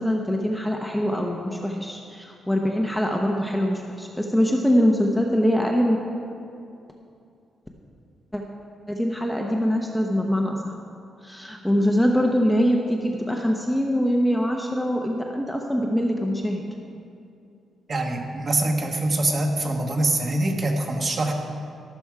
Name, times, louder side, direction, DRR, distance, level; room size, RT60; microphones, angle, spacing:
voice 1, 0.0-6.0 8.3-8.4 8.9-10.7 11.2-16.6, equal, ahead, 0 dB, 0.8 m, -23 dB
voice 2, 17.9-21.3, right 2 dB, 30° right, 3 dB, 1.2 m, -24 dB
12.0 x 12.0 x 4.8 m, 2.5 s
wide cardioid pair, 180°, 0 cm